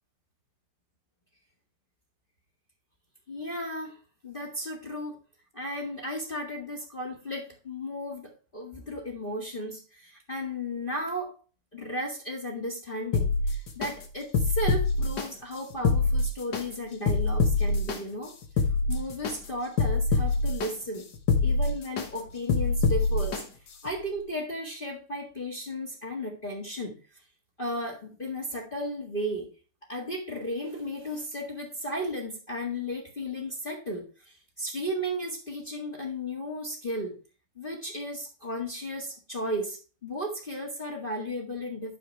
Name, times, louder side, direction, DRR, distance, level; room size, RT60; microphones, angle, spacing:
voice 1, 3.3-4.0 4.2-5.2 5.5-11.3 11.7-18.3 18.9-21.0 21.4-23.4 23.8-27.0 27.6-29.5 29.9-37.2 37.6-42.0, equal, 25° left, -3 dB, 1.8 m, -34 dB
sound 1, 13.1-13.9 14.3-15.3 15.7-16.6 17.1-18.0 18.4-19.3 19.8-20.7 21.1-22.1 22.5-23.4 23.9-24.0, left 3 dB, 55° left, 1.8 m, -24 dB
9.3 x 6.6 x 3.3 m, 0.36 s
omnidirectional pair, 2.4 m